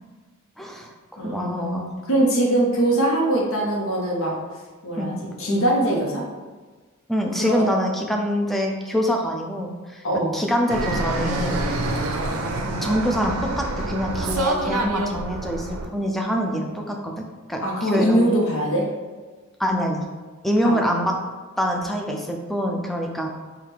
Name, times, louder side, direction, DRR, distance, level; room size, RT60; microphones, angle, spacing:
voice 1, 0.6-1.9 4.9-5.1 7.1-10.0 10.3-11.6 12.8-18.2 19.6-20.1 20.4-21.1 21.6-23.3, equal, ahead, 1 dB, 0.4 m, -25 dB
voice 2, 1.2-1.8 2.1-4.4 4.8-6.2 7.4-7.6 10.0-10.3 17.6-18.9 20.6-20.9, right 1 dB, 65° left, -2 dB, 0.9 m, -22 dB
Fixed-wing aircraft airplane, 10.7-15.9, right 2 dB, 75° right, 0.5 m, -26 dB
3.5 x 2.4 x 4.5 m, 1.4 s
head